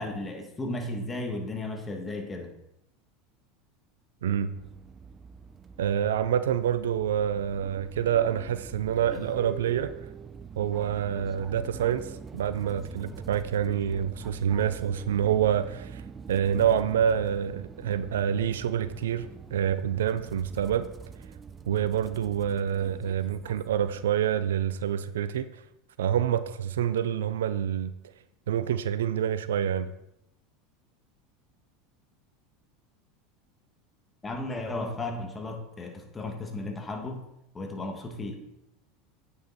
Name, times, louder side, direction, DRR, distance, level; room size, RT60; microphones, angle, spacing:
voice 1, 0.0-2.5 34.2-37.2 37.5-38.4, left 2 dB, 20° left, 3 dB, 2.0 m, -34 dB
sound 1, 4.5-24.1, right 6 dB, 30° right, 0.5 m, -44 dB
voice 2, 5.8-9.9 10.6-12.1 12.3-16.0 16.3-19.3 19.5-20.9 21.7-25.5 26.0-27.9 28.5-29.9, right 9 dB, 80° right, 13 dB, 0.5 m, -27 dB
8.8 x 7.0 x 4.3 m, 0.84 s
hypercardioid pair, 90°, 0 cm